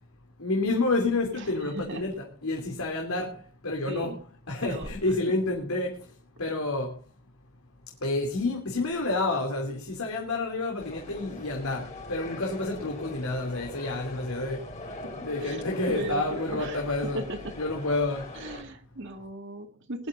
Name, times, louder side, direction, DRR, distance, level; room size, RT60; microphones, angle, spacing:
voice 1, 0.4-4.1 4.5-6.1 6.4-7.0 8.0-14.7 15.2-17.2 17.6-18.4, left 2 dB, 75° left, 3.1 m, -29 dB
voice 2, 1.4-2.1 3.9-4.2 4.6-4.9 15.0-15.6 15.9-16.8 17.1-17.6 18.3-20.1, right 1 dB, 55° right, 2.2 m, -37 dB
sound 1, 10.8-18.6, left 2 dB, 30° left, 5.0 m, -41 dB
22.0 x 12.0 x 2.7 m
head